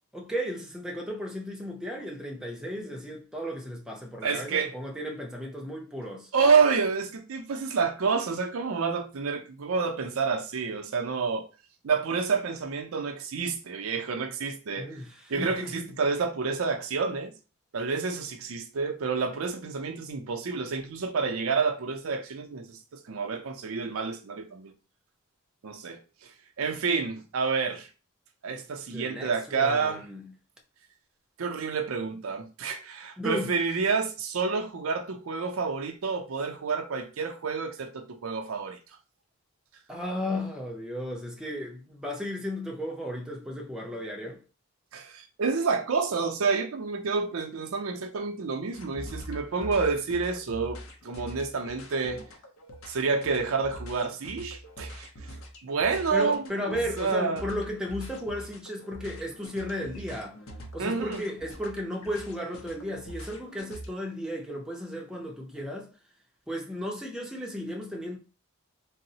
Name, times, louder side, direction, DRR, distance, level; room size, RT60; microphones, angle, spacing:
voice 1, 0.1-6.3 14.7-15.9 28.9-30.2 33.2-33.5 39.9-44.4 56.1-60.4 60.7-65.9 66.5-68.2, equal, 5° right, 0.5 m, -34 dB
voice 2, 4.2-4.7 6.3-11.5 11.8-15.0 15.3-17.3 17.7-24.7 25.6-27.9 28.4-30.1 31.4-38.8 44.9-52.2 52.9-55.1 55.6-57.4 60.8-61.2, right 5 dB, 70° right, 0.5 m, -29 dB
sound 1, 48.7-63.9, equal, 75° left, 0.7 m, -44 dB
3.8 x 2.0 x 2.7 m
head